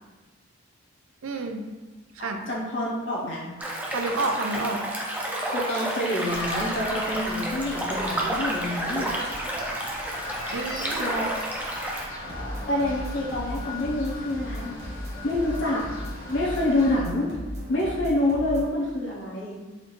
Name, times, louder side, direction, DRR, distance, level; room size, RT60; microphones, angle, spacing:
voice 1, 1.2-1.7 2.1-2.4 3.8-4.8 10.5-11.1, right 3 dB, 80° right, 4 dB, 0.4 m, -30 dB
voice 2, 2.2-3.5 5.5-9.1 11.0-11.4 12.7-14.8 15.2-15.8 16.3-17.3 17.7-19.6, left 1 dB, 60° left, -5 dB, 0.7 m, -27 dB
sound 1, 3.6-12.1, right 1 dB, 10° right, 0.4 m, -30 dB
sound 2, 6.2-17.0, left 2 dB, 85° left, 1.4 m, -39 dB
sound 3, 12.2-18.7, equal, 55° right, 1.1 m, -36 dB
4.2 x 2.4 x 3.1 m, 1.3 s
head